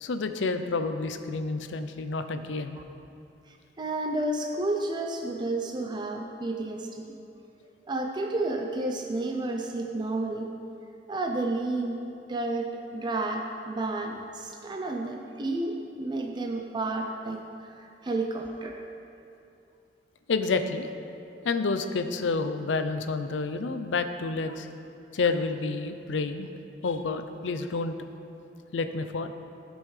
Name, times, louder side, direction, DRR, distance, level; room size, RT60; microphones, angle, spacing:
voice 1, 0.0-2.8 20.3-20.9 21.4-24.7 25.1-26.5 26.8-28.0 28.7-29.3, left 4 dB, 80° left, 9 dB, 0.5 m, -29 dB
voice 2, 3.8-7.2 7.9-10.5 11.1-12.0 12.3-18.8, right 2 dB, 25° right, 2 dB, 0.5 m, -31 dB
15.0 x 5.4 x 3.2 m, 2.6 s
head